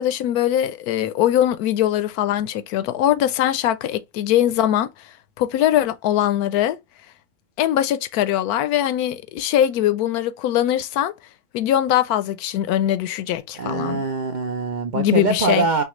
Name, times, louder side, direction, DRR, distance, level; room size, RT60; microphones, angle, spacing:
voice 1, 0.0-4.9 5.4-6.8 7.6-11.1 11.5-14.0 14.9-15.7, left 11 dB, 80° left, 1.1 m, -21 dB
voice 2, 13.6-15.8, right 4 dB, 85° right, 0.4 m, -23 dB
5.6 x 2.3 x 3.0 m
omnidirectional pair, 1.6 m